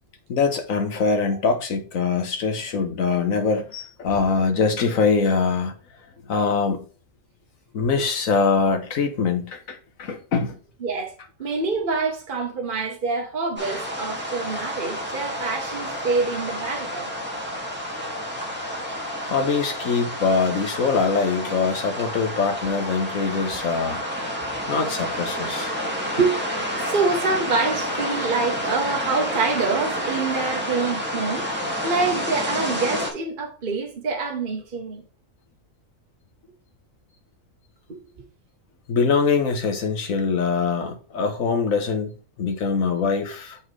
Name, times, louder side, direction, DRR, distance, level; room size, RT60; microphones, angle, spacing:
voice 1, 0.3-5.7 6.3-6.9 7.7-10.6 19.2-24.0 24.7-25.7 38.9-43.6, left 5 dB, 80° left, 1.6 m, -23 dB
voice 2, 10.8-11.1 11.4-17.1 26.2-26.3 26.8-31.5 31.8-35.0, right 4 dB, 40° right, 1.3 m, -26 dB
sound 1, 13.6-33.1, equal, 10° right, 2.1 m, -29 dB
7.2 x 5.7 x 3.3 m
omnidirectional pair, 1.4 m